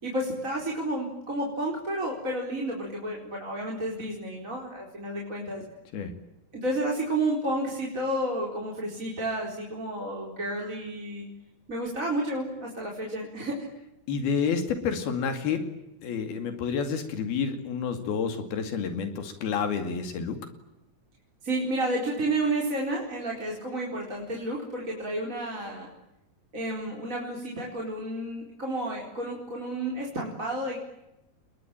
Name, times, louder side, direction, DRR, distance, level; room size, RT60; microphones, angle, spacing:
voice 1, 0.0-5.6 6.5-11.3 11.7-13.7 21.4-25.9 26.5-30.8, right 1 dB, 20° right, -2 dB, 4.5 m, -31 dB
voice 2, 14.1-15.7 16.0-20.4, left 6 dB, 85° left, 8 dB, 4.4 m, -29 dB
30.0 x 21.5 x 9.1 m, 0.90 s
omnidirectional pair, 4.3 m